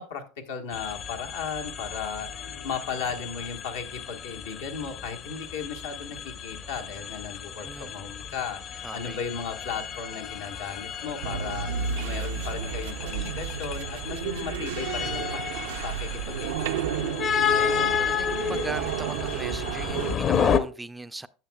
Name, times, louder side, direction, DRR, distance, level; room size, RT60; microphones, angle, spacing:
voice 1, 0.0-15.4 15.8-17.3, left 6 dB, 85° left, 1.3 m, -36 dB
sound 1, 0.7-20.6, left 7 dB, 40° left, 0.7 m, -32 dB
voice 2, 8.8-9.2 17.6-21.3, right 2 dB, 10° right, 0.3 m, -39 dB
sound 2, 9.3-9.7 10.1-17.3, left 10 dB, 55° left, 1.3 m, -51 dB
sound 3, 11.2-20.2, right 8 dB, 85° right, 0.4 m, -32 dB
10.5 x 7.0 x 2.3 m
supercardioid pair, 105°, 0 cm